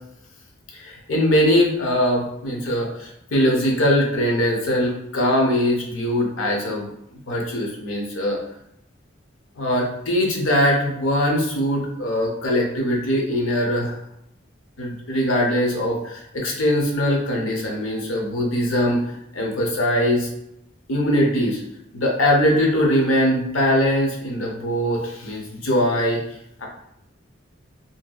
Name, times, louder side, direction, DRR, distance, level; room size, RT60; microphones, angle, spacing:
voice 1, 0.7-8.4 9.6-14.0 14.8-20.3 20.9-21.6 21.9-26.2, equal, 85° left, 0 dB, 0.7 m, -21 dB
2.7 x 2.6 x 2.3 m, 0.77 s
head